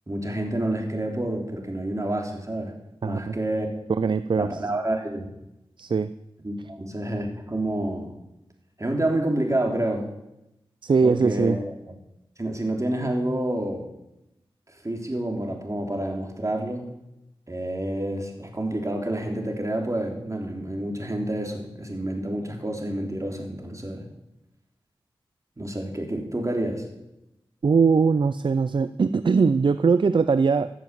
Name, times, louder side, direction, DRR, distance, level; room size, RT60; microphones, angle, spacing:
voice 1, 0.1-2.7 3.0-3.7 4.4-5.3 6.4-8.1 8.8-10.1 11.0-11.6 11.9-12.0 12.4-13.9 14.8-16.9 17.5-24.1 25.6-26.9, right 1 dB, 30° right, 2 dB, 3.4 m, -28 dB
voice 2, 3.0-3.3 4.0-4.5 5.8-6.1 10.8-11.6 27.6-30.7, right 5 dB, 55° right, 13 dB, 0.5 m, -21 dB
15.0 x 7.2 x 7.6 m, 0.89 s
cardioid pair, 40°, 10 cm